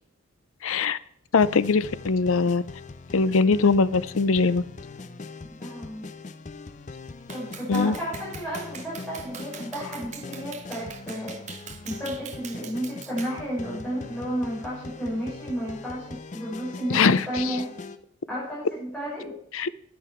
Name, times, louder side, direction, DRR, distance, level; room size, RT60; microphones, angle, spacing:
voice 1, 0.6-1.0 1.3-2.6 3.1-4.6 7.7-7.9 16.9-17.4 19.5-19.7, left 4 dB, 80° left, 16 dB, 0.6 m, -21 dB
sound 1, 1.4-18.0, left 3 dB, 35° left, 0.5 m, -41 dB
voice 2, 5.6-6.1 7.3-11.4 11.8-17.7 18.3-19.4, equal, 5° left, -8 dB, 5.4 m, -32 dB
Clapping, 7.3-13.4, right 7 dB, 35° right, 0.8 m, -43 dB
10.5 x 9.5 x 4.5 m, 0.68 s
head